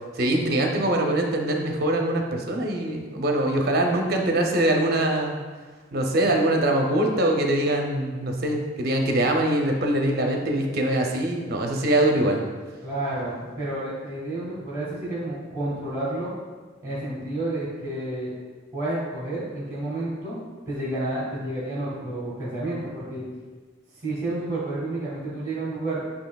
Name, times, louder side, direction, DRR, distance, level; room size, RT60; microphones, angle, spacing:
voice 1, 0.2-5.4 5.9-12.4, right 1 dB, 50° right, 2 dB, 0.6 m, -23 dB
voice 2, 12.8-16.3 16.8-18.3 18.7-20.4 20.7-23.2 24.0-26.0, right 1 dB, 15° right, -7 dB, 1.1 m, -30 dB
7.8 x 2.8 x 2.3 m, 1.4 s
head